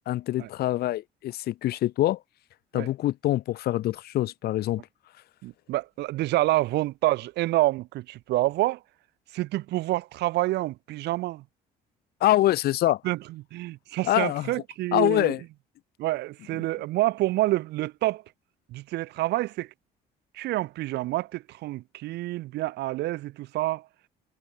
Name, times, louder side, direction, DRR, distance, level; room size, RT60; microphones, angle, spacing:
voice 1, 0.1-2.2 2.7-4.8 12.2-13.0 14.1-14.5 14.9-15.4, left 14 dB, 70° left, 1.1 m, -25 dB
voice 2, 5.4-8.8 9.3-11.5 13.0-15.3 16.0-18.2 18.7-19.7 20.3-23.9, right 17 dB, 80° right, 3.7 m, -28 dB
cardioid pair, 110°, 17 cm